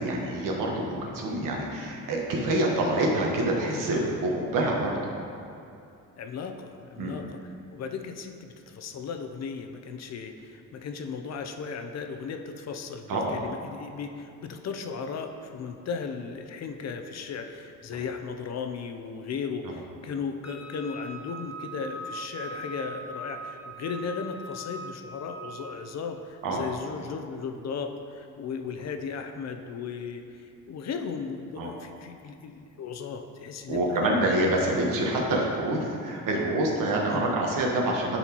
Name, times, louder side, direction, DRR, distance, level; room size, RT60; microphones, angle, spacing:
voice 1, 0.0-5.0 7.0-7.2 13.1-13.4 26.4-26.6 31.6-31.7 33.7-38.2, right 1 dB, 75° right, -1 dB, 1.3 m, -26 dB
voice 2, 6.2-34.2 37.1-37.3, left 5 dB, 55° left, 6 dB, 0.6 m, -36 dB
Wind instrument woodwind instrument, 20.4-25.8, right 1 dB, 5° right, 1.2 m, -41 dB
11.0 x 4.1 x 3.0 m, 2.6 s
cardioid pair, 115°, 33 cm